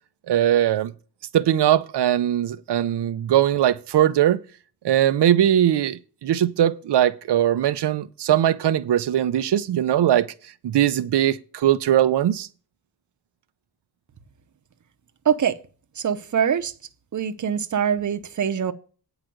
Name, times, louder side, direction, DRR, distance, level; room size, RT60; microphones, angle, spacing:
voice 1, 0.3-0.9 1.3-4.4 4.8-10.3 10.6-12.5, right 11 dB, 90° right, 0.7 m, -20 dB
voice 2, 15.2-15.6 16.0-16.7 17.1-18.7, right 8 dB, 50° right, 0.8 m, -23 dB
9.2 x 4.9 x 7.7 m
wide cardioid pair, 165°, 39 cm